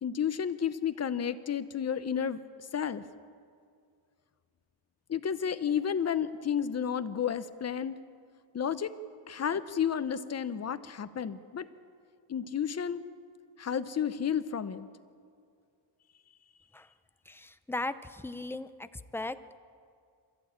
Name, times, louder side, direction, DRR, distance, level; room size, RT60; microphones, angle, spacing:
voice 1, 0.0-2.4 2.7-3.0 5.1-7.9 8.5-8.9 9.3-11.7 12.3-13.0 13.6-14.9, left 8 dB, 35° left, 12 dB, 0.8 m, -31 dB
voice 2, 17.3-18.7 19.1-19.4, left 2 dB, 5° left, 12 dB, 0.4 m, -36 dB
26.5 x 14.5 x 8.8 m, 2.3 s
wide cardioid pair, 165°, 47 cm